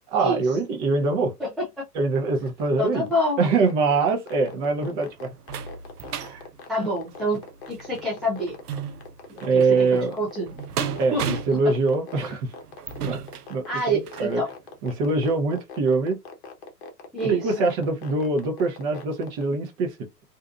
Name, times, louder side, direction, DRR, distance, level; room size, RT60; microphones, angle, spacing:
voice 1, 0.1-1.3 1.9-3.1 3.4-5.3 6.1-6.4 9.4-10.2 11.0-12.5 13.0-13.2 13.5-14.4 14.8-16.2 17.2-20.1, right 3 dB, 30° right, 0.7 m, -24 dB
voice 2, 1.4-1.8 2.8-3.4 6.7-7.4 7.7-8.6 9.3-9.9 10.2-10.5 11.1-11.6 13.7-14.5 17.1-17.7, right 1 dB, ahead, 0.4 m, -27 dB
sound 1, 2.5-19.4, left 5 dB, 40° left, 0.9 m, -41 dB
sound 2, 4.5-14.4 14.9-15.0 15.4-15.5, right 7 dB, 70° right, 0.6 m, -36 dB
2.6 x 2.4 x 2.3 m
figure-of-eight pair, 105°, 48 cm